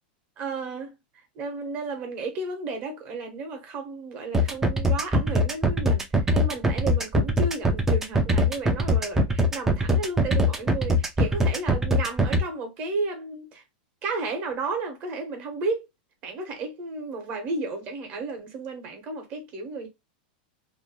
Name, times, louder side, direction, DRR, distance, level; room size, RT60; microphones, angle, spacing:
voice 1, 0.4-0.9 1.4-13.6 14.0-15.8 16.2-19.9, right 3 dB, 30° right, 0.8 m, -33 dB
sound 1, 4.3-12.4, equal, 10° right, 0.3 m, -21 dB
2.5 x 2.0 x 2.9 m
supercardioid pair, 160°, 5 cm